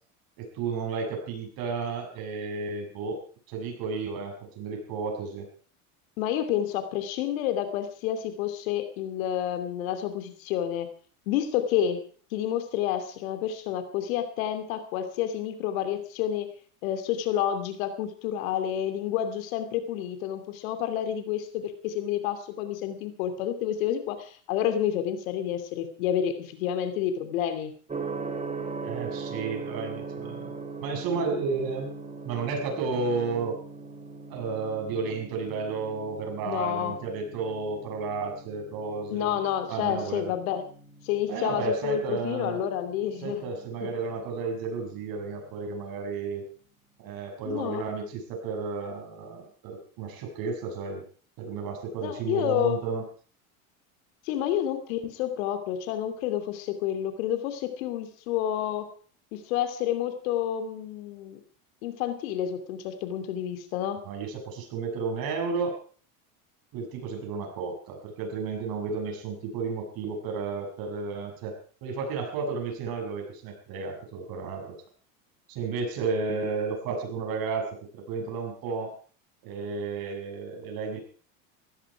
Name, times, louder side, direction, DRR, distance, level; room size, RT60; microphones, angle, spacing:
voice 1, 0.4-3.2 3.5-5.5 28.8-30.5 30.8-31.9 32.2-33.6 34.3-39.4 39.7-40.3 41.3-42.6 43.2-46.4 47.0-51.0 51.4-53.0 64.0-65.7 66.7-74.8 75.5-78.9 79.4-81.0, right 4 dB, 55° right, 2 dB, 6.8 m, -32 dB
voice 2, 6.2-10.9 11.3-12.0 12.3-16.5 16.8-27.7 36.4-37.0 39.1-40.6 41.0-43.4 43.8-43.9 47.4-47.8 52.0-52.8 54.3-58.9 59.3-61.4 61.8-64.0, left 10 dB, 75° left, 9 dB, 2.8 m, -29 dB
Gong, 27.9-45.8, right 4 dB, 15° right, 2.4 m, -41 dB
17.0 x 14.5 x 4.8 m, 0.43 s
hypercardioid pair, 90°, 41 cm